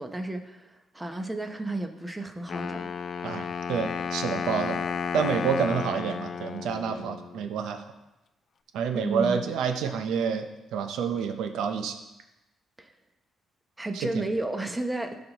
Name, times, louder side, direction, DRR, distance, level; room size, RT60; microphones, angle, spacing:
voice 1, 0.0-2.9 8.9-9.5 12.8-12.9 13.8-15.2, right 2 dB, 15° right, 5 dB, 0.9 m, -32 dB
Wind instrument woodwind instrument, 2.5-7.5, left 6 dB, 50° left, 0.4 m, -33 dB
voice 2, 3.2-4.8 5.1-7.8 8.7-11.9 13.9-14.2, right 6 dB, 85° right, 7 dB, 0.8 m, -28 dB
13.5 x 5.2 x 3.1 m, 0.97 s
cardioid pair, 90°, 0 cm